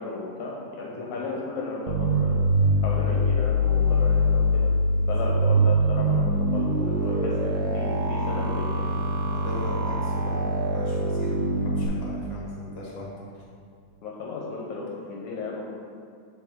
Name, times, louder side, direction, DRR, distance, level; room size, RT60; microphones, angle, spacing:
voice 1, 0.0-2.4 2.8-4.7 5.1-8.9 14.0-15.6, left 4 dB, 75° left, -2 dB, 1.8 m, -34 dB
voice 2, 0.9-1.2 3.8-4.1 4.9-5.3 7.0-7.2 8.8-13.1 13.3-13.4, left 1 dB, 55° left, -4 dB, 0.9 m, -40 dB
sound 1, 1.9-11.9, equal, 85° right, 2.3 m, -23 dB
8.1 x 4.9 x 3.6 m, 2.3 s
omnidirectional pair, 4.0 m